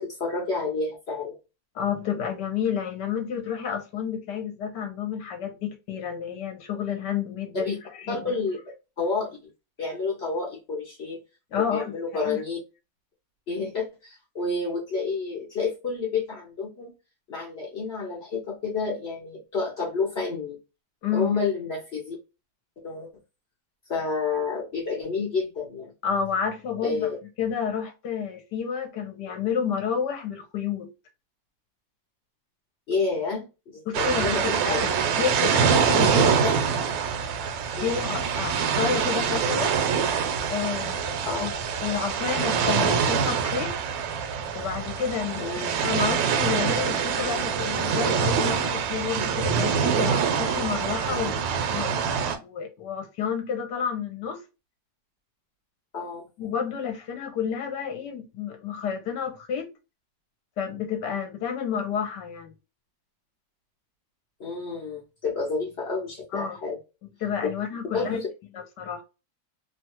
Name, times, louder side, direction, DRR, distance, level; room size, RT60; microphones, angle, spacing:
voice 1, 0.0-1.4 7.5-7.8 8.1-8.6 9.0-9.4 9.8-11.2 11.5-12.6 13.5-16.9 17.3-20.6 21.1-22.2 22.8-23.1 23.9-25.9 26.8-27.2 32.9-33.4 33.7-34.8 36.4-36.5 37.8-38.0 41.2-41.5 45.4-45.7 55.9-56.2 64.4-66.8 67.9-68.3, left 4 dB, 55° left, 0.7 m, -29 dB
voice 2, 1.7-7.8 8.1-8.3 11.5-12.4 21.0-21.3 26.0-27.1 27.4-30.9 33.9-36.4 37.8-39.7 40.5-41.5 41.8-43.7 44.5-45.5 45.8-54.4 56.4-59.7 60.6-62.5 66.3-66.6 67.2-68.2 68.5-69.0, left 7 dB, 70° left, 1.2 m, -30 dB
sound 1, 33.9-52.4, right 7 dB, 75° right, 1.2 m, -25 dB
3.0 x 2.3 x 2.8 m
omnidirectional pair, 2.0 m